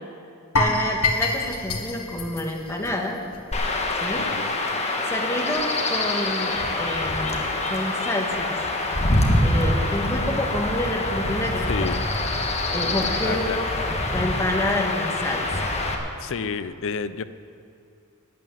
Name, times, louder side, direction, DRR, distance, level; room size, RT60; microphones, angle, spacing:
voice 1, 0.5-3.2 4.0-4.3 5.1-8.6 9.4-11.7 12.7-13.6 14.1-15.7, left 1 dB, 15° left, 1 dB, 1.6 m, -28 dB
sound 1, 0.6-3.6 3.8-4.0 4.5-4.6, left 2 dB, 80° left, 1.4 m, -26 dB
Chirp tweet / Wind / Stream, 3.5-15.9, left 2 dB, 30° left, 1.4 m, -25 dB
voice 2, 4.1-4.5 11.7-12.0 13.2-13.6 16.2-17.2, left 5 dB, 65° left, 13 dB, 0.5 m, -30 dB
12.0 x 9.2 x 9.2 m, 2.5 s
head